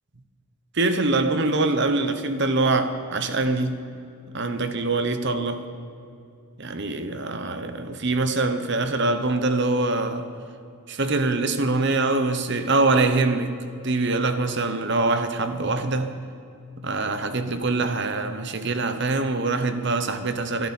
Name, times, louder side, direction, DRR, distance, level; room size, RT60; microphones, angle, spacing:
voice 1, 0.7-3.9 4.3-5.7 6.6-10.3 10.9-13.6 13.8-16.2 16.8-20.7, right 3 dB, 55° right, 1.1 m, -24 dB
25.5 x 12.5 x 4.4 m
head